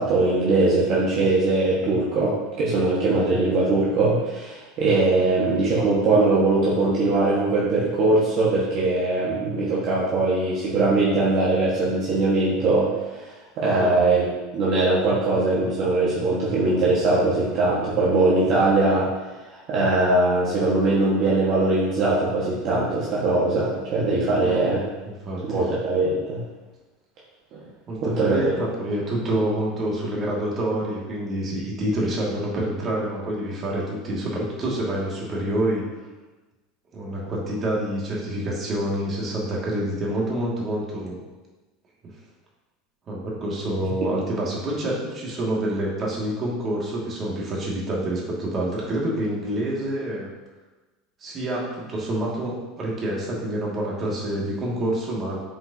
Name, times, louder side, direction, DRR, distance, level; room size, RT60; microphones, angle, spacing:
voice 1, 0.0-13.2 13.6-14.3 14.5-19.1 19.7-24.8 25.4-26.4 27.5-27.6 28.0-28.5, right 2 dB, 50° right, -6 dB, 1.5 m, -21 dB
voice 2, 25.0-25.7 27.9-35.9 36.9-41.2 43.1-50.3 51.2-55.4, right 1 dB, 35° right, -4 dB, 2.1 m, -27 dB
7.6 x 4.9 x 2.8 m, 1.2 s
supercardioid pair, 105°, 0 cm